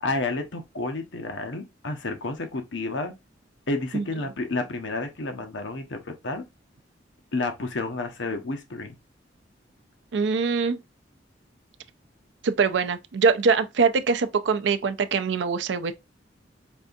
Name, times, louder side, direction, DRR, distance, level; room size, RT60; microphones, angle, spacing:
voice 1, 0.0-3.1 3.7-6.4 7.3-8.9, left 2 dB, 85° left, 0.8 m, -30 dB
voice 2, 10.1-10.8 12.4-15.9, right 5 dB, 70° right, 0.4 m, -23 dB
5.3 x 2.6 x 2.4 m
head